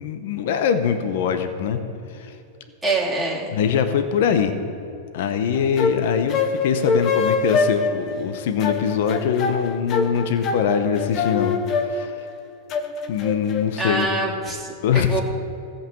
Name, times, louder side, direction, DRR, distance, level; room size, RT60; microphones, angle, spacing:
voice 1, 0.0-1.8 2.1-2.4 3.5-4.5 5.1-11.6 11.8-12.3 13.1-14.1 14.8-15.2, left 7 dB, 70° left, 8 dB, 0.9 m, -22 dB
voice 2, 2.8-3.5 13.8-15.2, right 2 dB, 5° right, -5 dB, 2.5 m, -25 dB
sound 1, 5.5-14.1, left 4 dB, 40° left, 1.0 m, -24 dB
14.5 x 5.7 x 7.1 m, 2.7 s
supercardioid pair, 130°, 0 cm